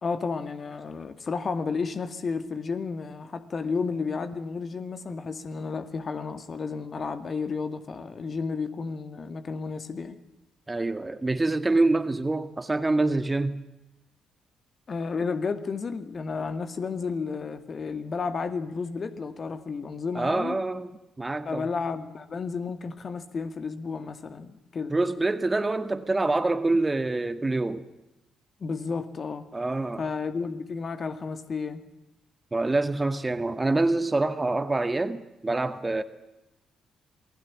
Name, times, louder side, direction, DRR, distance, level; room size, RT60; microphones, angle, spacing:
voice 1, 0.0-10.2 14.9-20.6 21.4-24.9 28.6-29.5 30.0-31.8, left 4 dB, 40° left, 2.1 m, -32 dB
voice 2, 10.7-13.6 20.1-21.7 24.9-27.9 29.5-30.0 32.5-36.0, right 2 dB, 20° right, 1.7 m, -26 dB
28.0 x 20.0 x 7.4 m
figure-of-eight pair, 40°, 0 cm